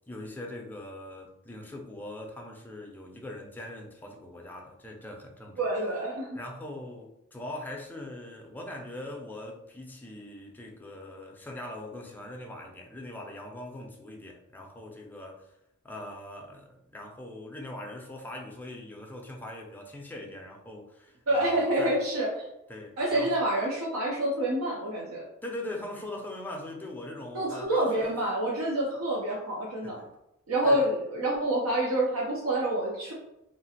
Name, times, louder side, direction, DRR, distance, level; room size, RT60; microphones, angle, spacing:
voice 1, 0.1-5.6 6.3-15.5 15.8-22.0 22.7-23.4 25.4-28.2 29.8-30.2 30.6-30.9, left 1 dB, 10° left, 0 dB, 0.4 m, -41 dB
voice 2, 5.6-6.4 21.3-22.3 23.0-25.2 27.3-30.0 30.5-33.1, right 1 dB, 80° right, -4 dB, 0.6 m, -27 dB
2.8 x 2.4 x 2.7 m, 0.87 s
head